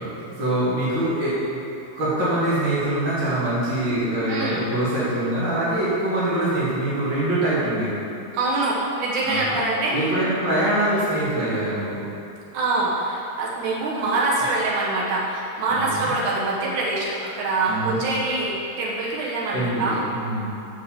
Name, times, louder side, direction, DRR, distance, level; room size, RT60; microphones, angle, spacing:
voice 1, 0.0-1.6 1.9-8.0 9.2-9.4 9.9-12.1 15.7-16.1 17.7-18.0 19.5-19.9 20.1-20.5, right 1 dB, 50° right, -11 dB, 1.4 m, -24 dB
voice 2, 4.3-4.6 8.3-10.1 12.5-20.0, right 2 dB, 85° right, -5 dB, 1.7 m, -24 dB
6.6 x 5.2 x 7.0 m, 2.8 s
omnidirectional pair, 5.1 m